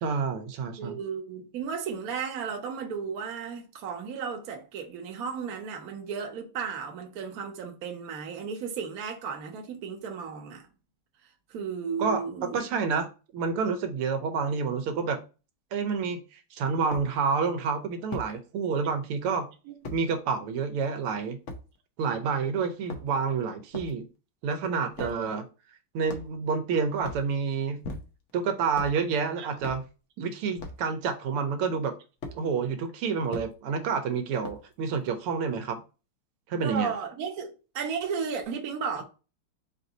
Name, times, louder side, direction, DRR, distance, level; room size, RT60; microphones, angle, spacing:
voice 1, 0.0-1.0 12.0-12.2 12.5-13.1 13.3-15.2 15.7-19.5 19.9-21.4 22.0-24.1 24.4-25.4 25.9-27.8 28.3-29.8 30.2-31.9 32.3-35.8 36.5-36.9, right 5 dB, 85° right, 1.6 m, -28 dB
voice 2, 0.8-10.7 11.5-12.6 19.6-19.7 25.0-25.4 29.4-29.5 30.2-30.3 36.6-39.0, right 6 dB, 55° right, 1.1 m, -34 dB
sound 1, 15.9-16.0 16.9-17.1 18.1-18.3 19.8-20.0 21.5-21.6 22.7-23.3 23.7-24.0 24.9-25.2 26.1-26.5 27.0-27.3 27.8-28.3 28.7-29.0 29.6-29.9 30.6-30.8 32.2-32.4 33.3-33.5 34.4-34.7, left 2 dB, 90° left, 0.6 m, -39 dB
4.6 x 2.6 x 3.9 m
omnidirectional pair, 2.4 m